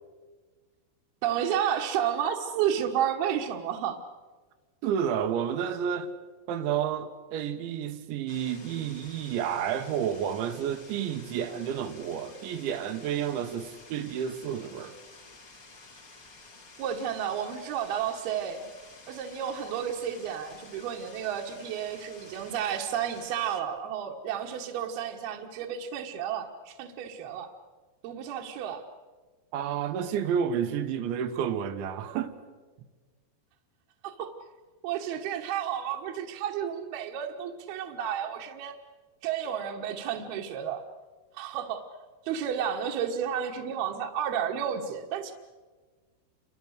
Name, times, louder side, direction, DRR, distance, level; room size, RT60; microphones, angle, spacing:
voice 1, 1.2-4.0 16.8-18.7 19.1-27.5 28.0-28.8 34.0-34.3 34.8-38.8 39.2-40.8 41.3-41.9 42.3-45.3, right 9 dB, 70° right, 3.0 m, -31 dB
voice 2, 4.8-6.1 6.5-14.9 29.5-32.3, right 8 dB, 85° right, 3.7 m, -30 dB
sound 1, 8.3-23.6, left 3 dB, 30° left, 1.6 m, -51 dB
29.5 x 25.0 x 6.5 m
omnidirectional pair, 5.2 m